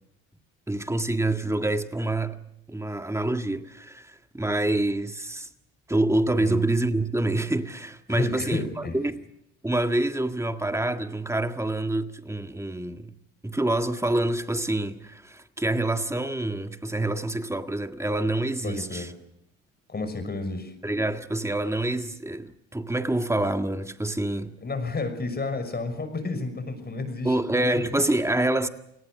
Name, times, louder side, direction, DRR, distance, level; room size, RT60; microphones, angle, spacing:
voice 1, 0.7-2.4 2.7-5.5 5.9-9.2 9.6-13.1 13.4-19.1 20.8-24.5 27.2-28.7, right 2 dB, 10° right, 1.7 m, -26 dB
voice 2, 8.1-9.0 18.6-19.1 19.9-20.7 24.6-28.0, left 3 dB, 25° left, 6.1 m, -31 dB
29.0 x 18.5 x 6.5 m
supercardioid pair, 75°, 35 cm